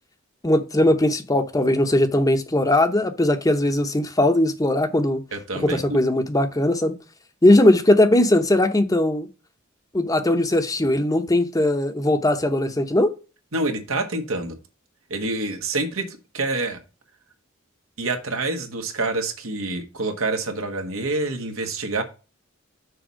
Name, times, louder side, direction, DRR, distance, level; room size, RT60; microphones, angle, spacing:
voice 1, 0.4-5.2 5.5-6.9 7.4-9.3 9.9-13.1, left 1 dB, 15° left, 0.8 m, -19 dB
voice 2, 5.3-6.0 13.5-14.6 15.1-16.8 18.0-22.0, right 2 dB, 80° right, 1.4 m, -27 dB
6.4 x 4.2 x 6.1 m
head